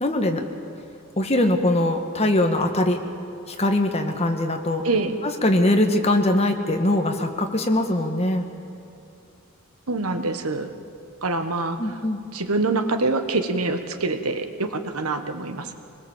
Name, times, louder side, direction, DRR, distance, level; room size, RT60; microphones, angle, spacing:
voice 1, 0.0-0.4 1.2-3.0 3.5-4.8 5.2-8.5 11.8-12.2, left 1 dB, 30° left, 5 dB, 1.5 m, -22 dB
voice 2, 9.9-10.7 11.2-11.8 12.3-15.7, right 3 dB, 80° right, 8 dB, 1.5 m, -25 dB
25.0 x 20.5 x 7.3 m, 2.7 s
head